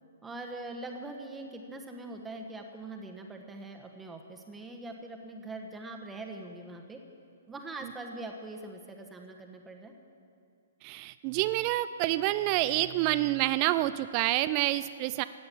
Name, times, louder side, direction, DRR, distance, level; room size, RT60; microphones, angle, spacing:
voice 1, 0.2-7.0 7.5-9.9, right 2 dB, 10° right, 3 dB, 1.2 m, -42 dB
voice 2, 10.8-15.2, right 16 dB, 30° right, 14 dB, 0.4 m, -28 dB
16.0 x 9.5 x 8.4 m, 2.4 s
figure-of-eight pair, 120°, 0 cm